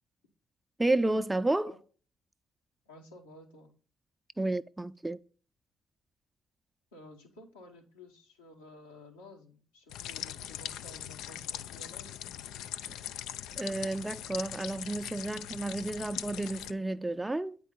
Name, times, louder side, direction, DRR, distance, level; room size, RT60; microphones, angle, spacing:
voice 1, 0.8-1.7 4.4-5.2 12.9-13.0 13.6-17.6, right 2 dB, 15° right, 0.5 m, -31 dB
voice 2, 2.9-3.7 6.9-12.2, left 1 dB, 90° left, 1.4 m, -53 dB
sound 1, 9.9-16.7, left 11 dB, 70° left, 0.3 m, -41 dB
8.9 x 4.6 x 3.8 m
hypercardioid pair, 45°, 0 cm